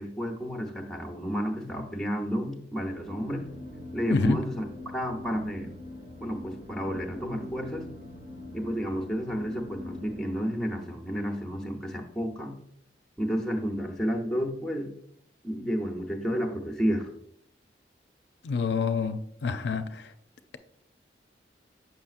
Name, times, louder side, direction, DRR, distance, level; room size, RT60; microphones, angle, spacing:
voice 1, 0.0-3.5 3.9-4.6 4.9-5.7 6.2-7.9 8.5-12.5 13.2-14.9 15.4-17.1, equal, 5° left, 0.7 m, -31 dB
sound 1, 2.9-10.2, left 1 dB, 35° right, 1.2 m, -44 dB
voice 2, 4.1-4.4 18.4-20.1, left 4 dB, 70° left, 0.4 m, -27 dB
6.9 x 5.7 x 2.5 m
head